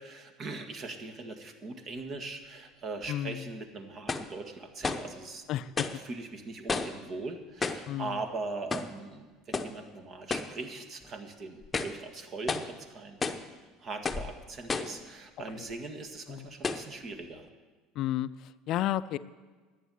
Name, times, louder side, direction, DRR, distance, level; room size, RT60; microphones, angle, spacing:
voice 1, 0.0-5.4 6.0-13.2 13.8-17.5, right 3 dB, 45° right, 6 dB, 1.8 m, -40 dB
sound 1, 3.0-3.1 4.1-4.3 4.8-5.1 5.8-6.0 6.7-7.0 7.6-7.9 8.7-9.0 9.5-9.8 10.3-10.6 11.0-11.1 11.6-12.0 12.5-12.8 13.2-13.5 14.0-14.3 14.7-15.0 15.7-15.8 16.6-16.9, left 4 dB, 20° left, 0.9 m, -32 dB
voice 2, 3.1-3.4 5.5-5.9 7.9-8.2 16.3-16.5 18.0-19.2, left 13 dB, 60° left, 16 dB, 0.4 m, -32 dB
11.0 x 8.2 x 9.5 m, 1.4 s
supercardioid pair, 90°, 0 cm